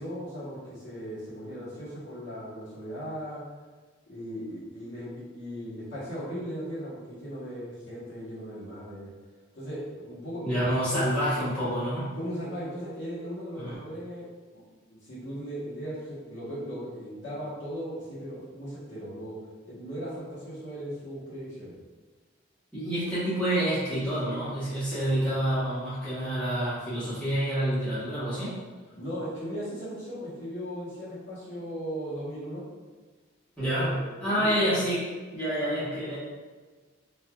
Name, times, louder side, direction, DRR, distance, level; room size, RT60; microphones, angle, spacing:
voice 1, 0.0-3.4 4.1-9.1 9.5-11.0 12.1-14.3 14.5-14.6 15.0-19.4 19.7-21.7 29.0-32.6 33.6-34.7, equal, 65° left, -10 dB, 1.2 m, -37 dB
voice 2, 10.4-12.1 13.6-13.8 22.7-28.5 33.6-35.0 35.3-36.2, right 1 dB, 5° left, -14 dB, 1.1 m, -28 dB
3.3 x 2.6 x 2.4 m, 1.3 s
head